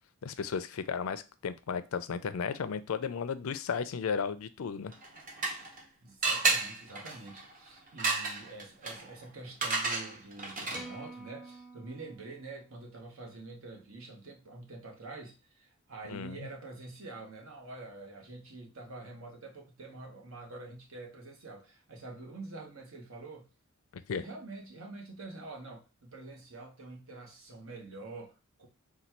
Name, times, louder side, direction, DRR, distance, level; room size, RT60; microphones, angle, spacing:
voice 1, 0.2-4.9 16.1-16.5 23.9-24.2, left 6 dB, 80° left, 0.4 m, -34 dB
sound 1, 4.9-5.8 6.2-11.1, right 3 dB, 40° right, 0.8 m, -33 dB
voice 2, 6.0-23.5 24.1-28.7, right 2 dB, 70° right, 1.2 m, -46 dB
sound 2, 10.7-13.1, right 1 dB, 5° right, 0.5 m, -49 dB
4.0 x 2.3 x 4.4 m
head